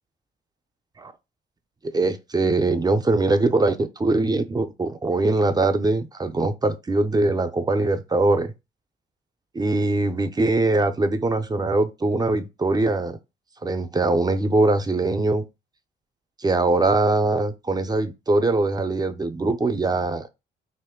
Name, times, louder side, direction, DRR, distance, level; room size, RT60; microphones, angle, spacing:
voice 1, 1.8-8.5 9.5-13.2 13.6-15.4 16.4-20.3, right 2 dB, 20° right, 0.5 m, -22 dB
3.0 x 2.5 x 3.6 m
cardioid pair, 90°, 20 cm